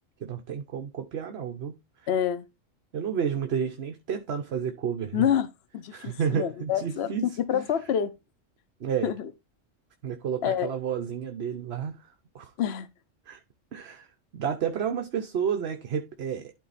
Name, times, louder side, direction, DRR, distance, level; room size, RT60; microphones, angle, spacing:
voice 1, 0.2-1.7 2.9-5.3 5.9-7.4 8.8-9.1 10.0-12.0 12.3-12.5 13.3-13.4 13.7-14.1 14.3-16.5, right 7 dB, 55° right, 1.1 m, -31 dB
voice 2, 2.1-2.4 5.1-5.5 5.7-8.1 9.0-9.3 10.4-10.7 12.6-12.9, left 9 dB, 60° left, 0.9 m, -27 dB
12.0 x 4.1 x 4.1 m
omnidirectional pair, 1.4 m